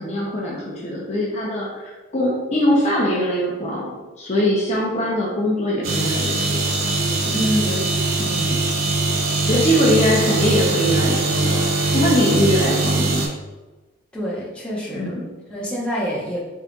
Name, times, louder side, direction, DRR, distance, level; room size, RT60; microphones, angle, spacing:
voice 1, 0.0-6.6 7.1-7.2 7.6-7.8 8.2-8.6 9.4-11.6 11.9-13.2 14.9-15.2, equal, 35° left, -5 dB, 0.6 m, -22 dB
sound 1, 5.8-13.3, right 2 dB, 80° right, 0.8 m, -21 dB
voice 2, 7.3-7.8 9.4-9.7 14.1-15.1 15.5-16.4, equal, 5° left, -7 dB, 0.9 m, -26 dB
4.1 x 3.7 x 2.3 m, 1.2 s
head